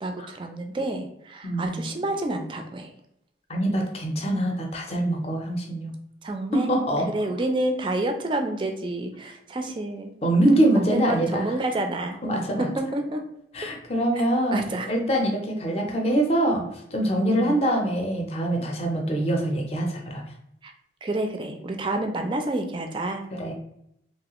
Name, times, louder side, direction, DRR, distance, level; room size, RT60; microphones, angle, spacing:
voice 1, 0.0-2.9 6.2-6.7 7.1-10.1 10.7-12.2 12.8-13.2 14.5-14.9 17.3-17.6 20.6-20.7 21.0-23.2, right 2 dB, 30° right, 4 dB, 0.3 m, -29 dB
voice 2, 1.4-1.8 3.5-5.9 6.5-7.1 10.2-11.5 12.2-12.7 13.5-16.6 16.9-20.2 23.4-23.5, right 1 dB, 35° left, 1 dB, 0.6 m, -24 dB
3.1 x 2.3 x 2.9 m, 0.76 s
head